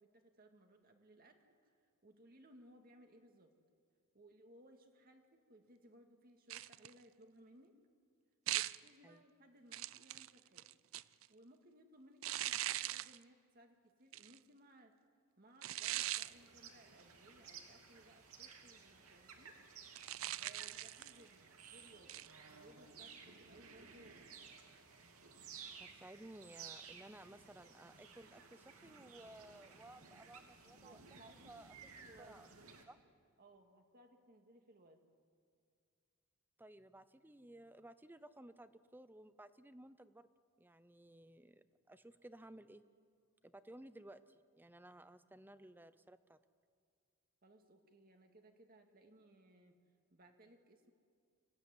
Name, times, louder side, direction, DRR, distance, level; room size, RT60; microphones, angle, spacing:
voice 1, 0.0-3.5 4.1-7.8 8.5-10.6 11.3-15.0 15.4-19.6 20.4-24.4 30.8-31.5 31.8-32.6 33.4-35.2 47.4-49.8 50.1-50.9, right 1 dB, 45° right, 4 dB, 2.0 m, -63 dB
sound 1, 6.5-7.0 8.5-8.9 9.7-11.3 12.2-13.2 14.1-14.4 15.6-16.3 20.0-21.2 22.1-22.3, right 14 dB, 65° right, 0.5 m, -41 dB
sound 2, 16.2-32.8, right 6 dB, 85° right, 2.7 m, -57 dB
voice 2, 25.8-31.8 32.2-32.5 32.9-33.0 36.6-40.3 40.6-42.8 43.4-46.4, right 1 dB, 10° right, 13 dB, 0.6 m, -57 dB
25.5 x 16.5 x 9.7 m, 2.3 s
head